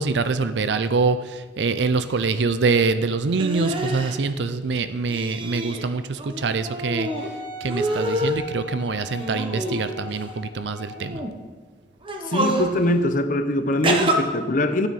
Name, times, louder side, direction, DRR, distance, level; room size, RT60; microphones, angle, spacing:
voice 1, 0.0-7.1 7.6-11.2, right 4 dB, 80° right, 11 dB, 0.5 m, -24 dB
sound 1, 3.4-4.1 5.1-5.8 6.2-7.3 7.7-8.4 9.1-10.2 11.0-11.3 12.0-12.7 13.8-14.2, right 1 dB, 30° right, 1.0 m, -27 dB
Wind instrument woodwind instrument, 7.0-11.3 12.0-12.1, left 2 dB, 30° left, 3.1 m, -39 dB
voice 2, 12.3-14.9, left 1 dB, 50° left, 9 dB, 0.8 m, -22 dB
12.5 x 9.0 x 4.1 m, 1.4 s
head